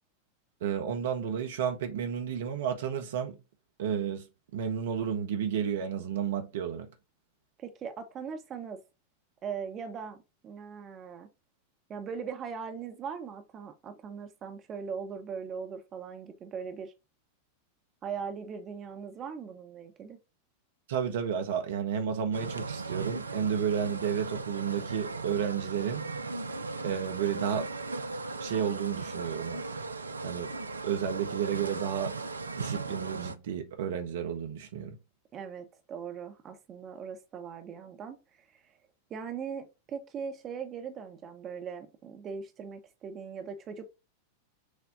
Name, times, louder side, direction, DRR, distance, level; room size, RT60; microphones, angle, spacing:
voice 1, 0.6-3.4 3.8-4.3 4.5-6.9 20.9-26.1 26.8-27.7 28.4-29.6 30.2-30.5 30.8-32.1 32.5-35.0, right 8 dB, 60° right, 0.7 m, -31 dB
voice 2, 7.6-8.8 9.4-11.3 11.9-16.9 18.0-20.2 35.3-38.6 39.1-43.9, right 6 dB, 30° right, 0.8 m, -40 dB
sound 1, 22.3-33.3, right 3 dB, 75° right, 0.4 m, -37 dB
6.4 x 2.2 x 3.8 m
figure-of-eight pair, 90°, 0 cm